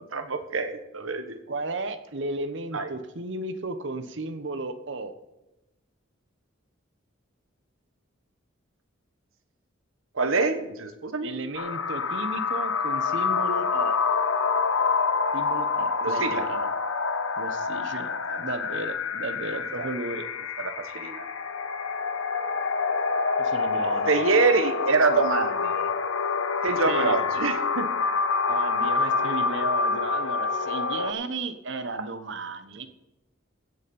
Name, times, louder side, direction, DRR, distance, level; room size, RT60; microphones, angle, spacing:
voice 1, 0.0-1.4 2.7-2.9 10.1-11.3 16.0-16.5 18.3-18.4 19.5-19.9 20.6-21.3 24.1-25.9 26.6-27.9 32.0-32.1, right 4 dB, 90° right, 9 dB, 1.2 m, -26 dB
voice 2, 1.5-5.1 11.2-13.9 15.3-16.7 17.4-18.1 18.4-20.3 23.4-24.1 26.9-27.2 28.5-32.9, right 2 dB, 65° right, 11 dB, 1.0 m, -34 dB
sound 1, 11.5-31.1, left 5 dB, 80° left, 0.9 m, -27 dB
16.0 x 6.9 x 5.4 m, 0.95 s
head